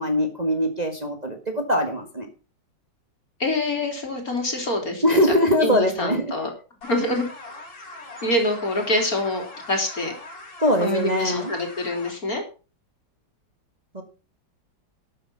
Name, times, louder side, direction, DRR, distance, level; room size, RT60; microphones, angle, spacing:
voice 1, 0.0-2.3 5.0-6.3 8.0-8.1 10.6-11.5 13.9-14.0, equal, 20° right, 4 dB, 1.7 m, -22 dB
voice 2, 3.4-5.2 5.6-6.5 6.9-7.3 8.2-10.1 10.8-12.4, left 1 dB, 50° left, 3 dB, 3.9 m, -25 dB
sound 1, 6.8-12.1, left 2 dB, 90° left, 4.9 m, -41 dB
12.5 x 8.5 x 5.7 m, 0.34 s
omnidirectional pair, 2.1 m